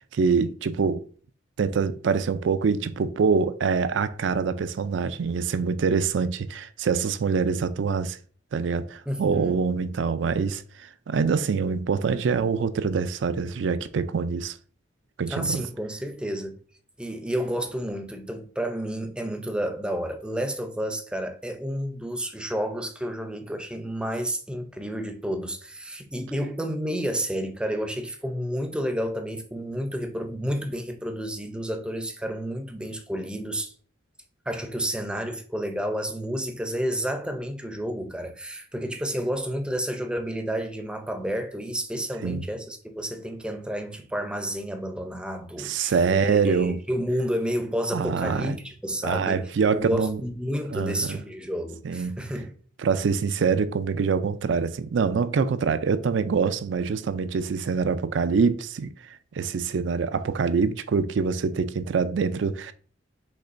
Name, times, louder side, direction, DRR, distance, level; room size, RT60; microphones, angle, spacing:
voice 1, 0.1-1.1 1.6-8.2 8.5-14.6 15.2-15.6 42.2-42.4 45.6-46.8 47.9-48.6 49.0-50.2 50.7-51.2 51.8-52.2 52.8-62.7, right 5 dB, 75° right, 0.4 m, -25 dB
voice 2, 9.1-9.6 15.3-16.5 17.0-33.7 34.5-52.5, equal, 5° right, 0.5 m, -30 dB
5.3 x 3.7 x 2.5 m
head